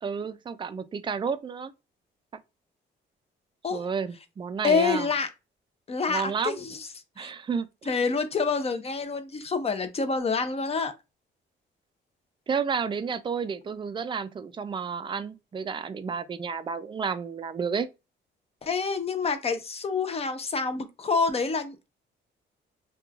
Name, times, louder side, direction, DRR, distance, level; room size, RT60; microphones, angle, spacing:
voice 1, 0.0-1.7 3.7-5.1 6.1-6.6 7.2-7.7 12.5-17.9, right 6 dB, 25° right, 0.3 m, -31 dB
voice 2, 4.6-5.3 5.9-6.8 7.2-7.3 7.9-10.9 18.6-21.9, left 4 dB, 30° left, 0.5 m, -27 dB
3.0 x 2.2 x 2.3 m
cardioid pair, 90°, 20 cm